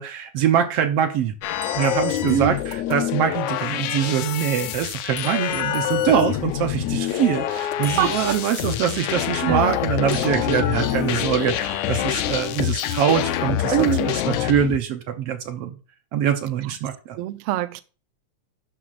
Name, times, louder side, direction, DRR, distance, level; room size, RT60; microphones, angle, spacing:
voice 1, 0.0-1.3 1.7-13.8 14.1-15.8 16.1-17.2, right 9 dB, 70° right, 1.7 m, -23 dB
sound 1, 1.4-14.8, left 12 dB, 80° left, 1.9 m, -26 dB
sound 2, 1.6-2.9 3.2-3.3 5.2-6.2 7.8-8.8 10.1-11.4 12.8-13.5, equal, 35° right, 0.7 m, -44 dB
voice 2, 8.0-8.4 9.4-9.8 10.5-10.6 13.7-14.1 16.6-16.7 17.2-17.8, right 13 dB, 85° right, 1.3 m, -24 dB
12.0 x 6.4 x 2.5 m
omnidirectional pair, 3.3 m